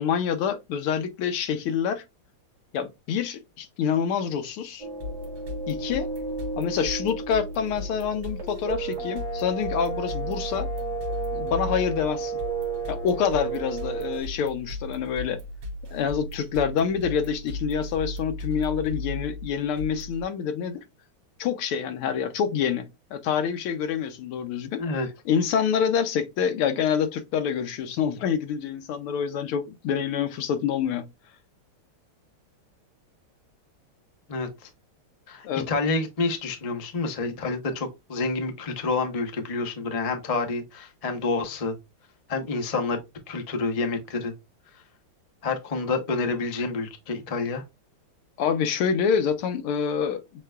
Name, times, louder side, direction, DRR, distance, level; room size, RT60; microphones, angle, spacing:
voice 1, 0.0-2.0 2.7-4.9 5.7-6.1 6.6-10.7 11.3-12.4 12.9-15.4 15.9-20.8 21.4-24.8 25.3-31.1 35.4-35.7 48.4-50.4, left 7 dB, 85° left, 1.7 m, -27 dB
sound 1, 4.8-14.2, right 4 dB, 15° right, 1.9 m, -33 dB
sound 2, 5.0-20.2, left 1 dB, 60° right, 1.7 m, -36 dB
voice 2, 34.3-34.7 35.3-41.7 42.3-43.0 43.3-44.3 45.4-47.6, left 3 dB, 60° left, 0.4 m, -28 dB
6.7 x 3.3 x 2.3 m
omnidirectional pair, 2.3 m